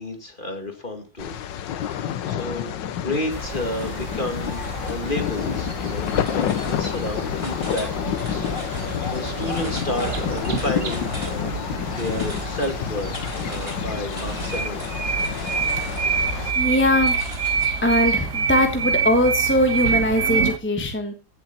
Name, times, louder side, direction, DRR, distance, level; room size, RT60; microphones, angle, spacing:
voice 1, 0.0-1.3 1.7-13.1 13.5-14.8, left 1 dB, 25° left, 5 dB, 2.1 m, -31 dB
sound 1, 1.2-16.5, left 10 dB, 70° left, 1.5 m, -29 dB
sound 2, 3.3-18.3, right 1 dB, 30° right, 4.6 m, -38 dB
sound 3, 3.3-20.6, right 6 dB, 45° right, 1.4 m, -28 dB
voice 2, 16.2-17.2 17.8-21.2, left 1 dB, 5° left, 5 dB, 1.2 m, -21 dB
15.5 x 7.2 x 4.2 m, 0.32 s
omnidirectional pair, 2.1 m